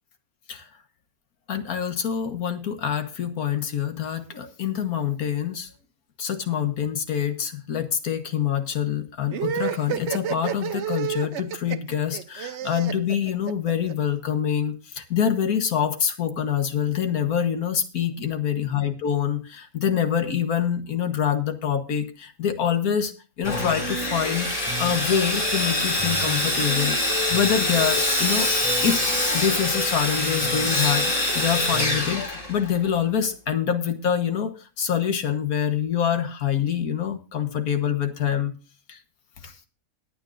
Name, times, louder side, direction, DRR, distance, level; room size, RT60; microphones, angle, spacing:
voice 1, 1.5-5.7 6.2-23.1 23.4-24.5 24.8-28.5 28.8-38.5 38.9-39.0 39.4-39.5, left 8 dB, 90° left, 8 dB, 1.7 m, -26 dB
sound 1, 9.3-13.9, right 9 dB, 60° right, 0.9 m, -30 dB
Sawing, 23.4-32.9, left 1 dB, 55° left, 3.2 m, -25 dB
sound 2, 23.4-32.3, left 1 dB, 20° left, 4.9 m, -34 dB
21.0 x 9.0 x 2.6 m, 0.35 s
omnidirectional pair, 1.5 m